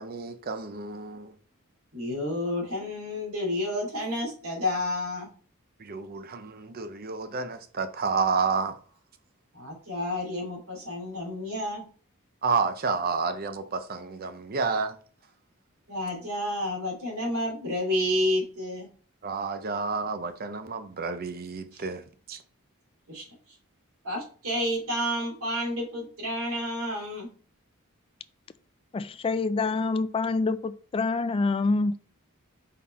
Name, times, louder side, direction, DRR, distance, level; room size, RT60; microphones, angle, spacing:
voice 1, 0.0-1.3 5.8-8.8 12.4-15.0 19.2-22.4, right 5 dB, 45° right, 0.6 m, -30 dB
voice 2, 1.9-5.3 9.5-11.8 15.9-18.9 21.7-21.8 23.1-23.2 24.0-27.3, left 1 dB, 90° right, 2.7 m, -30 dB
voice 3, 28.9-32.0, left 3 dB, 25° left, 0.3 m, -26 dB
5.4 x 4.3 x 4.2 m
head